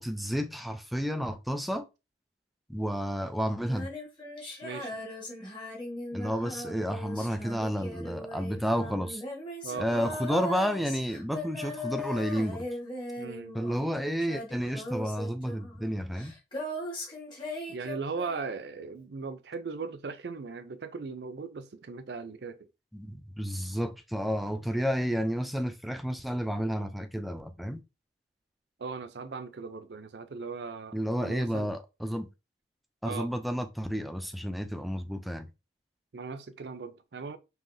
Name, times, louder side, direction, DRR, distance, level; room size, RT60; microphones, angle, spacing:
voice 1, 0.0-1.9 2.7-3.9 6.1-9.2 9.8-12.7 13.5-16.3 22.9-27.8 30.9-32.3 33.0-35.5, equal, ahead, 0.4 m, -31 dB
Female singing, 3.6-13.9 14.2-18.7, left 1 dB, 25° left, 1.4 m, -39 dB
voice 2, 4.6-5.0 9.6-10.2 13.2-13.6 17.7-22.7 28.8-31.7 33.0-33.3 36.1-37.4, right 4 dB, 65° right, 0.5 m, -38 dB
5.5 x 2.8 x 2.6 m
head